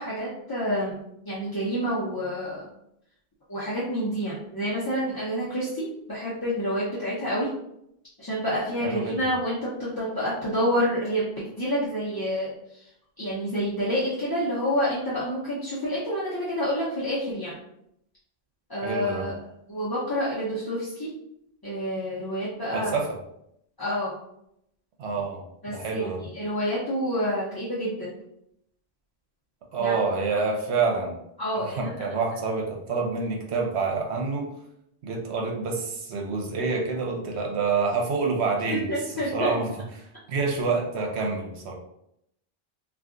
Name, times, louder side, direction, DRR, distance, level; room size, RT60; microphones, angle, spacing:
voice 1, 0.0-2.7 3.5-7.5 8.2-12.9 13.2-17.5 18.7-19.4 19.7-21.1 21.6-23.0 23.8-24.1 25.6-28.1 29.8-29.9 30.3-30.4 31.4-32.0 38.7-39.5, equal, 25° left, -9 dB, 0.5 m, -28 dB
voice 2, 8.8-9.2 18.8-19.3 22.7-23.1 25.0-25.4 25.7-26.2 29.7-31.2 31.5-34.5 35.0-38.9 39.3-39.7 40.3-41.7, right 4 dB, 75° right, 1 dB, 0.9 m, -27 dB
2.4 x 2.3 x 3.7 m, 0.78 s
omnidirectional pair, 1.1 m